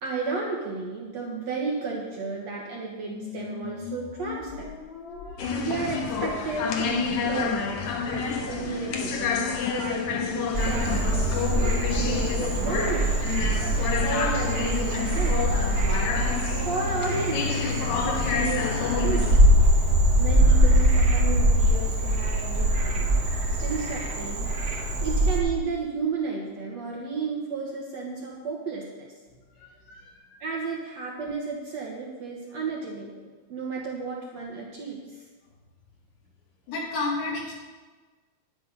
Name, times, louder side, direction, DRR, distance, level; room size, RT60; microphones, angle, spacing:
voice 1, 0.0-4.7 5.6-13.3 14.0-15.5 16.6-19.4 20.2-24.5 25.0-29.1 30.4-35.3, right 4 dB, 60° right, -2 dB, 1.9 m, -33 dB
sound 1, 3.0-11.8, left 4 dB, 45° left, 1.6 m, -42 dB
sound 2, 5.4-19.4, left 6 dB, 65° left, 2.0 m, -29 dB
Frog, 10.5-25.4, right 1 dB, 75° right, 0.9 m, -23 dB
voice 2, 29.5-30.4 36.7-37.5, left 3 dB, 85° left, -3 dB, 4.7 m, -33 dB
11.5 x 9.8 x 5.3 m, 1.3 s
omnidirectional pair, 4.6 m